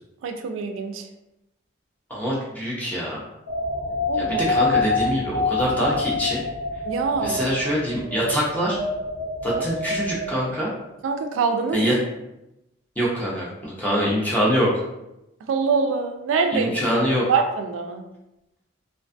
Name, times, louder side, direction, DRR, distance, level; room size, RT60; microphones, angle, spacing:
voice 1, 0.2-1.1 4.1-4.4 6.8-7.4 11.0-12.0 15.5-17.0 17.3-18.0, right 5 dB, 80° right, 5 dB, 0.3 m, -24 dB
voice 2, 2.1-3.2 4.2-6.4 7.2-8.8 9.4-10.7 11.7-11.9 13.0-14.7 16.5-17.2, equal, 10° left, -6 dB, 0.5 m, -24 dB
sound 1, 3.5-10.8, left 2 dB, 70° left, 0.6 m, -27 dB
2.4 x 2.3 x 2.4 m, 0.91 s
head